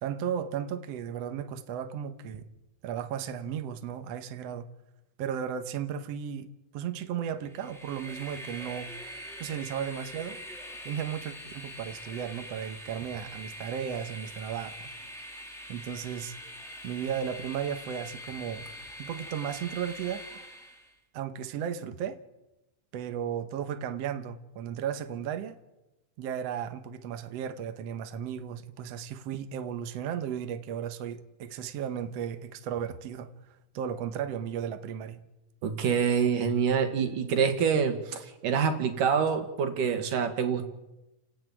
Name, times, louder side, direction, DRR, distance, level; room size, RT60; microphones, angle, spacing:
voice 1, 0.0-2.5 2.8-4.7 5.2-8.9 9.4-10.4 10.9-14.8 15.7-16.4 16.8-18.7 19.0-20.2 21.1-22.2 22.9-25.6 26.2-33.3 33.7-35.2, right 8 dB, 65° right, 1.9 m, -35 dB
Train, 7.4-20.9, equal, ahead, 3.4 m, -43 dB
voice 2, 35.6-40.6, right 6 dB, 80° right, 3.5 m, -26 dB
29.5 x 12.5 x 9.0 m
omnidirectional pair, 3.7 m